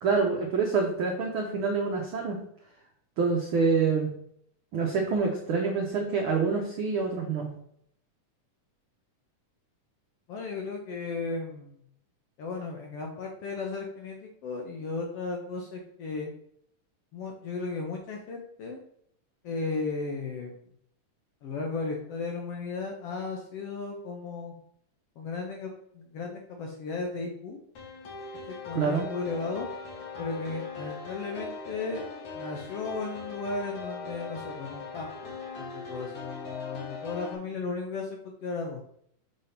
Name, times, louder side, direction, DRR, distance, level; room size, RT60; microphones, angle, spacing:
voice 1, 0.0-2.4 3.2-4.1 4.7-7.5 28.7-29.1, right 4 dB, 80° right, 0 dB, 1.1 m, -26 dB
voice 2, 10.3-11.8 12.4-16.3 17.1-18.8 19.4-20.7 21.4-24.5 25.2-27.6 28.6-29.7 30.2-32.0 32.3-38.8, left 4 dB, 70° left, 1 dB, 1.5 m, -35 dB
sound 1, 27.7-37.3, left 4 dB, 50° left, 1.5 m, -40 dB
6.6 x 3.4 x 5.7 m, 0.68 s
omnidirectional pair, 3.6 m